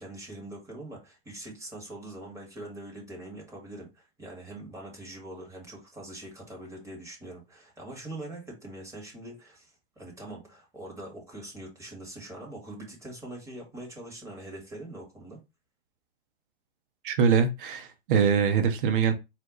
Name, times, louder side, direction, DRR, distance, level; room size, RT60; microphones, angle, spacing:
voice 1, 0.0-15.4, right 1 dB, 10° right, 1.7 m, -43 dB
voice 2, 17.0-19.1, right 6 dB, 50° right, 0.9 m, -23 dB
4.3 x 2.5 x 3.9 m
hypercardioid pair, 130°, 34 cm